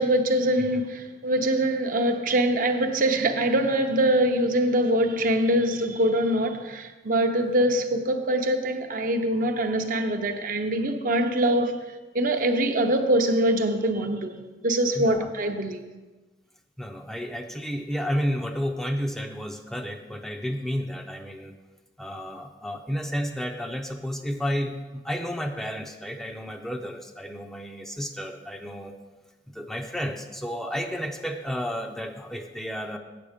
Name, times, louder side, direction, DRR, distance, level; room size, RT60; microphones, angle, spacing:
voice 1, 0.0-11.8 12.1-14.4 14.6-15.8, right 1 dB, 50° right, 0.7 m, -23 dB
voice 2, 15.0-15.3 16.8-21.5 22.0-28.9 29.5-33.0, equal, ahead, 0.5 m, -31 dB
8.4 x 7.1 x 5.1 m
head